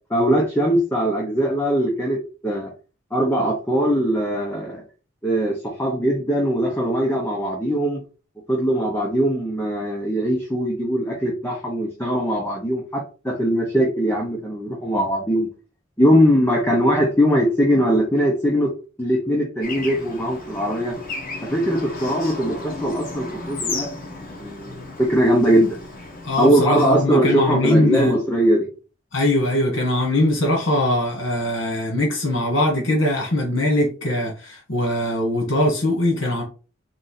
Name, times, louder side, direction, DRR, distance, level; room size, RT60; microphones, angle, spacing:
voice 1, 0.1-2.7 3.1-4.8 5.2-8.0 8.5-15.5 16.0-18.7 19.0-21.0 21.4-23.9 24.2-25.8 26.4-28.7, equal, 10° left, 0.8 m, -21 dB
Bird / Traffic noise roadway noise, 19.6-26.4, left 3 dB, 45° left, 1.1 m, -34 dB
voice 2, 26.2-28.1 29.1-36.4, left 1 dB, 80° left, 1.6 m, -21 dB
3.9 x 2.6 x 4.1 m
head